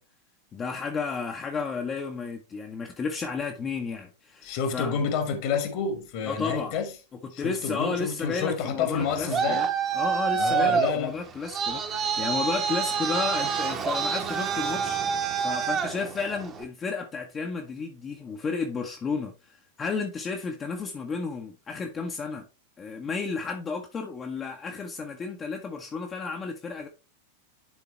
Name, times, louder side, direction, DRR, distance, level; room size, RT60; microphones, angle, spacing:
voice 1, 0.5-5.0 6.3-6.8 7.2-9.7 9.9-22.4 22.8-26.9, left 5 dB, 20° left, 0.8 m, -32 dB
voice 2, 4.4-6.9 7.3-9.6 10.4-11.1, left 6 dB, 45° left, 1.5 m, -29 dB
Traffic noise roadway noise, 8.9-16.6, right 7 dB, 30° right, 1.1 m, -27 dB
10.5 x 3.9 x 3.0 m
figure-of-eight pair, 90°, 0 cm